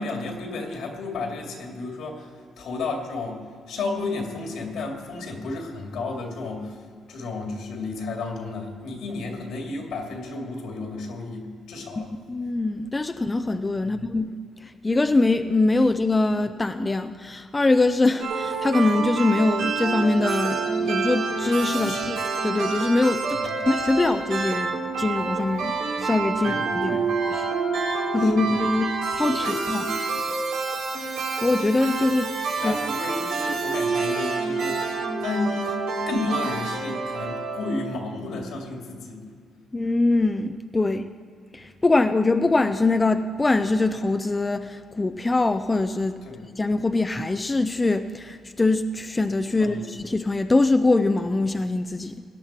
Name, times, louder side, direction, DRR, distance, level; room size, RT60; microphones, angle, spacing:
voice 1, 0.0-2.3 2.6-12.1 13.8-14.0 21.7-22.1 23.3-23.6 26.4-27.1 28.2-28.6 29.4-29.6 32.6-35.7 36.1-39.2 46.2-46.4 49.6-49.9, left 3 dB, 80° left, 1 dB, 2.5 m, -32 dB
voice 2, 12.0-22.2 22.4-24.7 25.0-27.0 27.3-27.5 28.1-30.0 31.4-32.3 32.6-32.8 39.7-41.1 41.5-46.2 46.6-52.2, left 2 dB, 20° left, 8 dB, 0.5 m, -23 dB
sound 1, 18.2-38.1, right 4 dB, 90° right, 3.4 m, -28 dB
17.5 x 11.0 x 4.4 m, 2.2 s
cardioid pair, 90°, 0 cm